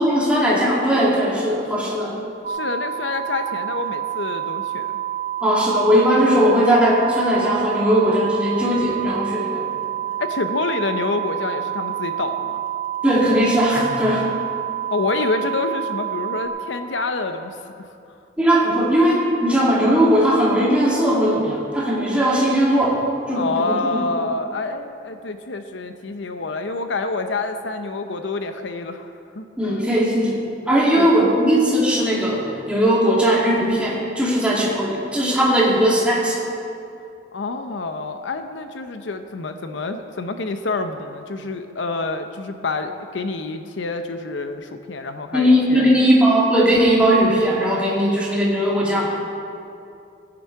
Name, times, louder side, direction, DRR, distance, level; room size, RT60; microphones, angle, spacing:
voice 1, 0.0-2.2 5.4-9.7 13.0-14.3 18.4-24.0 29.6-30.4 30.7-36.4 45.3-49.3, equal, 5° right, -6 dB, 2.6 m, -18 dB
sound 1, 2.4-16.5, right 11 dB, 35° right, 1.2 m, -28 dB
voice 2, 2.5-5.0 10.2-12.6 14.9-17.9 23.3-29.9 30.9-31.1 37.3-46.1, left 3 dB, 80° left, 7 dB, 0.8 m, -27 dB
17.0 x 9.9 x 4.7 m, 2.5 s
head